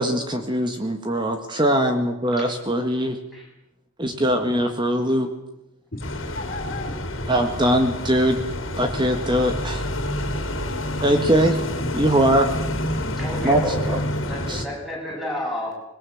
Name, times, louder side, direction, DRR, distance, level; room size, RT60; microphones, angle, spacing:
voice 1, 0.0-3.2 4.0-5.3 7.3-8.4 8.7-9.8 11.0-11.6 11.9-12.5 13.4-14.0 14.5-14.6, equal, 20° right, 6 dB, 1.7 m, -21 dB
voice 2, 5.9-7.4, left 2 dB, 45° left, 2 dB, 3.4 m, -37 dB
sound 1, 6.0-14.7, left 1 dB, 65° left, 3.2 m, -28 dB
voice 3, 13.1-15.8, left 1 dB, ahead, -2 dB, 7.9 m, -31 dB
25.5 x 21.5 x 7.2 m, 0.86 s
head